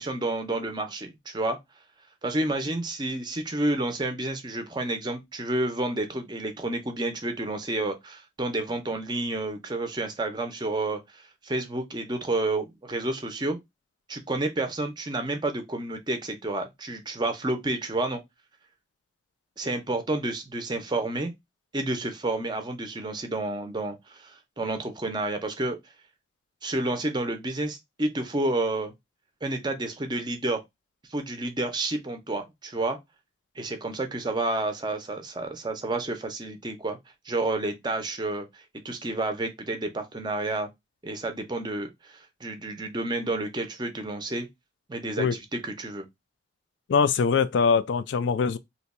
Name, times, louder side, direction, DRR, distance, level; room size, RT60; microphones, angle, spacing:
voice 1, 0.0-1.6 2.2-13.6 14.1-18.2 19.6-21.3 21.7-25.8 26.6-28.9 29.4-30.6 31.1-33.0 33.6-37.0 37.3-40.7 41.0-44.5 44.9-46.1, right 2 dB, 25° right, 0.5 m, -30 dB
voice 2, 46.9-48.6, left 5 dB, 70° left, 0.3 m, -22 dB
2.8 x 2.2 x 4.0 m
head